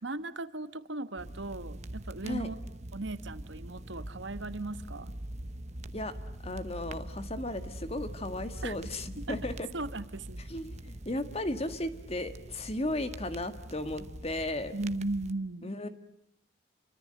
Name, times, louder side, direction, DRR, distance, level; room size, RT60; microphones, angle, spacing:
voice 1, 0.0-2.6 2.9-5.1 8.6-8.8 9.2-9.4 9.7-10.4 14.7-15.8, right 2 dB, 65° right, 12 dB, 1.3 m, -37 dB
sound 1, 1.2-15.3, right 1 dB, 35° right, 1.0 m, -43 dB
voice 2, 6.4-9.7 10.5-14.7 15.6-15.9, left 1 dB, 30° left, 10 dB, 1.8 m, -35 dB
29.0 x 24.5 x 7.8 m, 0.75 s
head